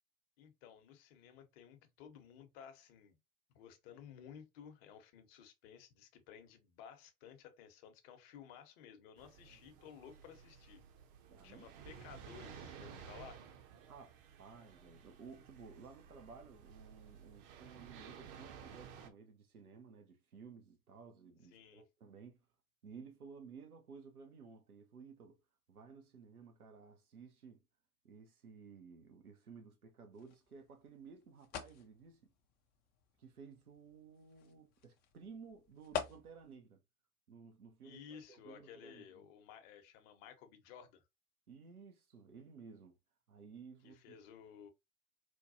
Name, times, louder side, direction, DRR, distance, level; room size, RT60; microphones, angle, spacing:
voice 1, 0.4-3.2 3.5-10.8 11.4-13.4 21.5-21.8 37.8-41.0 43.8-44.7, left 8 dB, 45° left, 0.9 m, -56 dB
sound 1, 9.2-19.1, right 7 dB, 40° right, 0.7 m, -55 dB
voice 2, 11.3-11.7 13.9-22.4 22.8-25.4 25.7-27.6 28.0-32.3 33.2-36.8 37.3-39.3 41.5-43.0 43.3-44.2, right 5 dB, 85° right, 0.8 m, -55 dB
sound 2, 30.1-36.6, left 8 dB, 25° left, 0.4 m, -48 dB
4.5 x 2.2 x 2.7 m
figure-of-eight pair, 95°, 43 cm